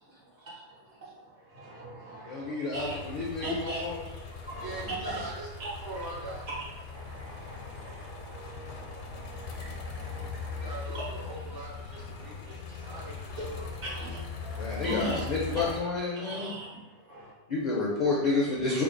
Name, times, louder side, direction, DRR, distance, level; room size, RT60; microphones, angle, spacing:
voice 1, 0.2-3.0 3.4-5.2 5.6-5.7 5.9-6.0 6.8-11.0 12.3-12.9 13.3-15.2 15.5-15.6 16.1-17.3, right 1 dB, 65° right, -7 dB, 1.6 m, -41 dB
voice 2, 2.3-4.0 14.6-16.5 17.5-18.8, left 3 dB, 50° left, -5 dB, 0.5 m, -30 dB
sound 1, 2.7-15.8, left 5 dB, 75° left, 0.9 m, -40 dB
voice 3, 4.6-5.5 5.8-6.5 10.5-13.4, right 2 dB, 35° right, -3 dB, 0.4 m, -41 dB
3.1 x 2.3 x 3.8 m, 1.1 s
omnidirectional pair, 1.3 m